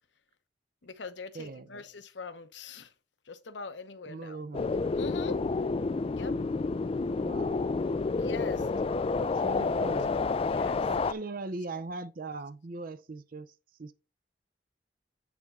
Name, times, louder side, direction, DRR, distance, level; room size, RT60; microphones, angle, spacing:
voice 1, 0.8-2.9 3.3-4.4 4.9-5.4 6.1-6.3 8.2-8.6 10.5-10.8, left 4 dB, 75° left, 0.9 m, -42 dB
voice 2, 1.3-1.8 4.1-4.8 7.2-7.8 8.5-10.1 10.9-13.5 13.8-13.9, right 3 dB, 50° right, 0.6 m, -40 dB
sound 1, 4.5-11.1, left 4 dB, 30° left, 0.3 m, -29 dB
9.5 x 3.6 x 5.5 m
head